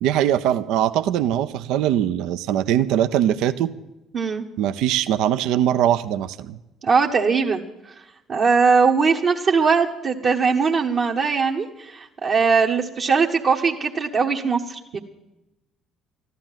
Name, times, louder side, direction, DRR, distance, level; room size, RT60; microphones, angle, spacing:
voice 1, 0.0-3.7 4.6-6.6, right 11 dB, 70° right, 11 dB, 0.5 m, -21 dB
voice 2, 4.1-4.5 6.8-7.6 8.3-15.0, right 5 dB, 50° right, -2 dB, 1.2 m, -20 dB
14.0 x 11.5 x 7.5 m, 0.96 s
hypercardioid pair, 55°, 0 cm